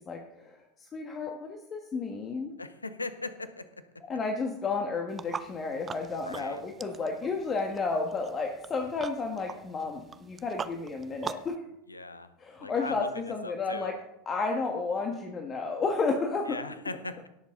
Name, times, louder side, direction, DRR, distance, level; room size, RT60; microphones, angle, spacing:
voice 1, 0.1-0.6 0.9-2.5 4.1-11.6 12.4-13.9 14.3-16.6, left 4 dB, 30° left, 3 dB, 1.5 m, -32 dB
voice 2, 2.6-3.7 6.1-6.6 11.9-12.3 12.6-13.9 16.5-17.3, left 3 dB, 85° left, 12 dB, 0.8 m, -39 dB
sound 1, 5.1-11.6, right 6 dB, 25° right, 0.6 m, -43 dB
17.5 x 7.4 x 3.8 m, 0.85 s
figure-of-eight pair, 80°, 0 cm